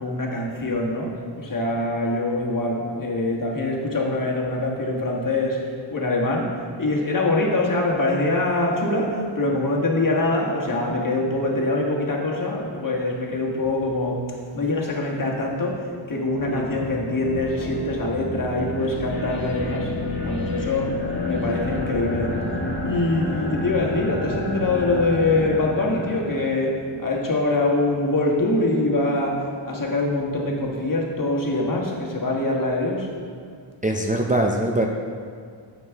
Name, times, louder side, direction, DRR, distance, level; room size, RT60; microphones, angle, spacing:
voice 1, 0.0-6.5 6.8-14.2 14.5-19.9 20.2-20.9 21.2-22.4 22.8-33.1, left 2 dB, 40° left, -1 dB, 1.5 m, -24 dB
sound 1, 16.2-26.8, left 2 dB, 25° left, 1.5 m, -30 dB
voice 2, 16.5-16.8 33.8-34.9, right 1 dB, 15° right, 0 dB, 0.5 m, -23 dB
9.3 x 7.2 x 3.5 m, 2.1 s
wide cardioid pair, 90°, 48 cm